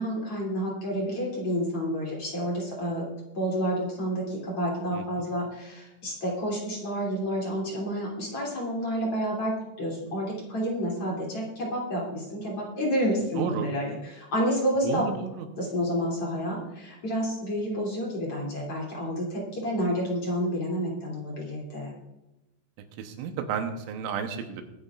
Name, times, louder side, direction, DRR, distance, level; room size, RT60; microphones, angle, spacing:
voice 1, 0.0-3.1 3.3-15.1 15.6-21.9, equal, 35° left, -4 dB, 3.3 m, -29 dB
voice 2, 13.4-13.7 14.8-15.5 23.0-24.6, right 7 dB, 85° right, 5 dB, 3.5 m, -32 dB
22.5 x 10.5 x 2.5 m, 0.98 s
omnidirectional pair, 5.6 m